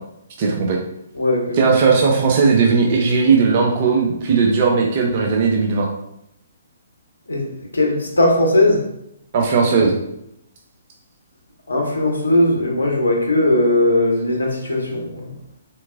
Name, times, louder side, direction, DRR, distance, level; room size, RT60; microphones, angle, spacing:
voice 1, 0.4-0.8 1.5-5.9 9.3-9.9, right 5 dB, 40° right, 0 dB, 0.5 m, -17 dB
voice 2, 1.1-1.7 7.3-7.5 7.7-8.8 11.7-15.3, left 1 dB, 75° left, 0 dB, 0.8 m, -18 dB
3.4 x 2.9 x 2.4 m, 0.80 s
figure-of-eight pair, 125°, 0 cm